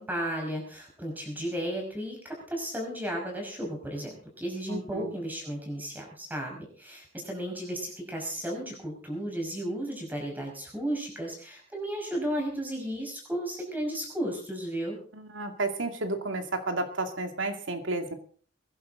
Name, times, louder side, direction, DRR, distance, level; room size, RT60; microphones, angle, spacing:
voice 1, 0.0-15.0, right 1 dB, 10° right, 0 dB, 5.5 m, -34 dB
voice 2, 4.7-5.1 15.1-18.1, right 2 dB, 75° right, 6 dB, 2.3 m, -32 dB
23.0 x 11.5 x 3.9 m, 0.43 s
head